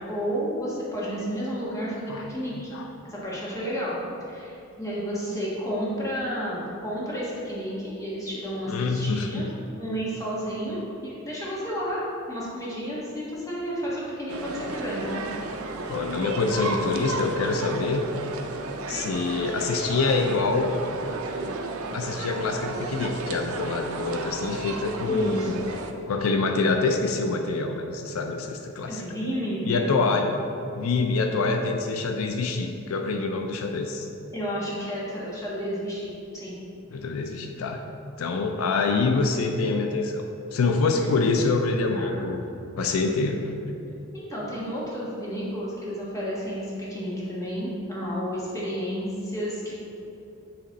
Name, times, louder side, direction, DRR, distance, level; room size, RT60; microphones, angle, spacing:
voice 1, 0.0-2.7 3.1-4.0 4.3-9.5 9.8-15.2 25.1-25.5 28.9-30.1 34.3-36.5 41.9-42.2 44.1-49.7, equal, 15° left, -7 dB, 1.4 m, -31 dB
voice 2, 8.7-9.5 15.9-18.1 18.9-20.7 21.9-25.7 26.1-29.0 29.6-30.4 30.8-34.1 36.9-37.8 38.2-40.3 40.5-42.4 42.8-43.5, left 3 dB, 80° left, 4 dB, 0.4 m, -26 dB
sound 1, 14.3-25.9, right 3 dB, 85° right, 0.5 m, -33 dB
8.5 x 3.1 x 4.0 m, 2.8 s
head